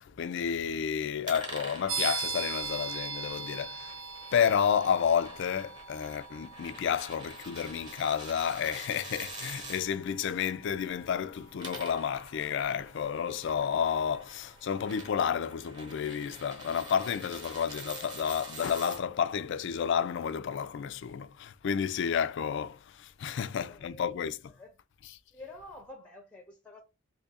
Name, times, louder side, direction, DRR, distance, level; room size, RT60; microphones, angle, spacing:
voice 1, 0.0-3.9 4.3-24.4, left 7 dB, 55° left, 0.3 m, -31 dB
sound 1, 1.2-9.8 11.4-19.0, right 1 dB, 20° right, 0.9 m, -46 dB
sound 2, 1.9-14.4, right 5 dB, 75° right, 0.7 m, -41 dB
voice 2, 23.3-24.8 25.3-26.8, left 2 dB, 5° left, 0.6 m, -50 dB
2.7 x 2.5 x 4.0 m
head